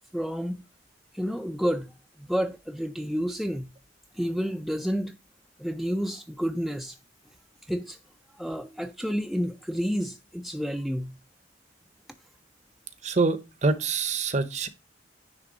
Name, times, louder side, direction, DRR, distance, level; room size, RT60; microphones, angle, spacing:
voice 1, 0.1-0.6 1.1-1.9 2.2-3.7 4.1-5.2 5.6-7.0 7.7-8.0 8.4-11.1, equal, ahead, 0.4 m, -30 dB
voice 2, 13.0-14.7, right 3 dB, 35° right, 0.7 m, -25 dB
9.7 x 3.4 x 5.1 m
head